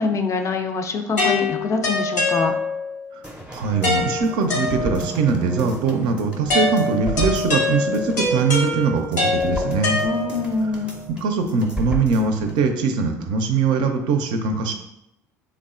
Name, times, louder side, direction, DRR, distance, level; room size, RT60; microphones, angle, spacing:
voice 1, 0.0-2.5 10.0-10.9, left 4 dB, 35° left, 5 dB, 0.4 m, -24 dB
sound 1, 1.2-3.0 3.8-5.3 6.5-10.6, left 2 dB, 90° left, 0.9 m, -24 dB
sound 2, 3.2-12.7 13.0-13.1, right 1 dB, 10° right, 0.6 m, -34 dB
voice 2, 3.5-10.0 11.1-14.7, right 4 dB, 55° right, 5 dB, 0.4 m, -22 dB
3.3 x 2.0 x 2.4 m, 0.85 s
hypercardioid pair, 65°, 9 cm